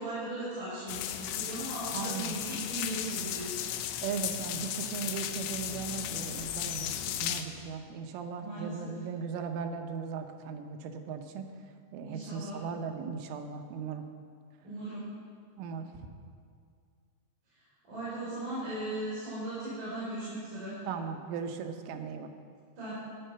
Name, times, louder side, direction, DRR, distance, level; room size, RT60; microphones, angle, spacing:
voice 1, 0.0-3.6 8.4-8.9 12.0-12.6 14.6-15.0 17.8-20.8 22.8-22.9, right 1 dB, 45° right, -11 dB, 5.3 m, -38 dB
sound 1, 0.9-7.4, left 11 dB, 90° left, 3.2 m, -35 dB
voice 2, 1.9-2.3 4.0-11.5 11.9-14.1 15.6-16.0 20.9-22.3, right 6 dB, 85° right, 6 dB, 3.3 m, -38 dB
14.5 x 9.0 x 5.7 m, 2.2 s
omnidirectional pair, 5.5 m